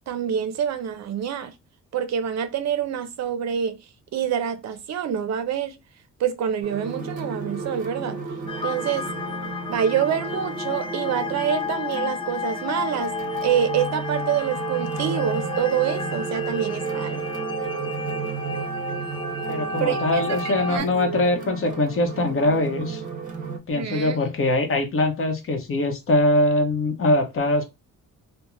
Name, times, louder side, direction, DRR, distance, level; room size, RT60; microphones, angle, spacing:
voice 1, 0.1-1.5 1.9-3.8 4.1-5.8 6.2-8.2 8.6-9.1 9.7-13.1 13.4-17.2 19.8-20.9 23.7-24.2, right 8 dB, 60° right, 0.5 m, -26 dB
sound 1, 6.6-23.6, right 5 dB, 25° right, 0.7 m, -33 dB
sound 2, 8.5-20.8, left 4 dB, 15° left, 0.3 m, -32 dB
voice 2, 19.5-23.0 23.7-27.6, left 1 dB, 45° left, 0.8 m, -22 dB
2.4 x 2.1 x 3.0 m
cardioid pair, 125°, 31 cm